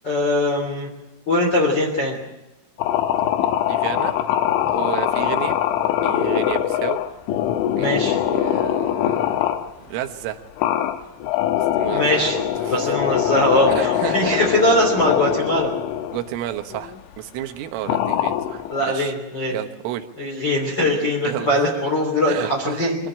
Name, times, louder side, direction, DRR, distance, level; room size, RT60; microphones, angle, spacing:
voice 1, 0.0-0.9 1.3-2.2 7.8-8.2 11.6-12.4 12.7-15.7 18.7-19.6 20.2-23.0, left 1 dB, 25° left, -2 dB, 3.0 m, -21 dB
sound 1, 2.8-9.7 10.6-16.2 16.7-17.0 17.9-18.8, left 11 dB, 80° left, 3.3 m, -22 dB
voice 2, 3.7-4.2 4.7-5.6 6.0-7.0 7.8-9.4 9.9-10.4 11.7-12.8 13.7-14.4 16.1-19.1 19.5-20.1 21.2-21.7 22.3-23.0, right 12 dB, 80° right, 7 dB, 3.8 m, -31 dB
25.0 x 13.5 x 9.0 m, 0.99 s
omnidirectional pair, 5.8 m